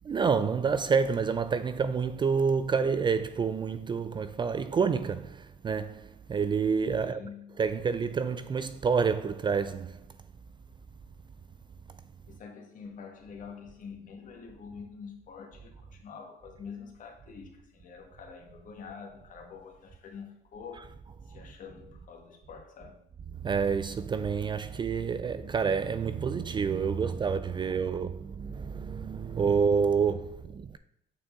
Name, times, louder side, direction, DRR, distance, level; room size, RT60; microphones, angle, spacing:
voice 1, 0.0-7.2 7.6-10.0 23.4-30.8, right 5 dB, 30° right, 0.4 m, -28 dB
voice 2, 7.0-7.6 12.3-20.9 21.2-23.1 27.0-27.1 27.5-28.0, left 6 dB, 50° left, 1.7 m, -47 dB
8.7 x 4.5 x 3.7 m
cardioid pair, 110°, 17 cm